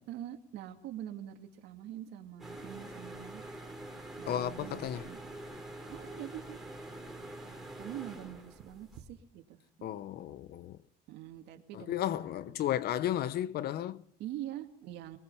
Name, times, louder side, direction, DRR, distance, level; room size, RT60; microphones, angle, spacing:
voice 1, 0.1-3.4 4.2-5.2 5.9-6.6 7.8-9.9 11.1-12.4 14.2-15.2, right 12 dB, 85° right, 2.4 m, -44 dB
sound 1, 2.4-9.0, right 1 dB, ahead, 4.2 m, -46 dB
voice 2, 4.3-5.1 9.8-10.8 11.7-14.0, left 11 dB, 70° left, 1.0 m, -34 dB
23.0 x 20.0 x 5.6 m
cardioid pair, 110°, 17 cm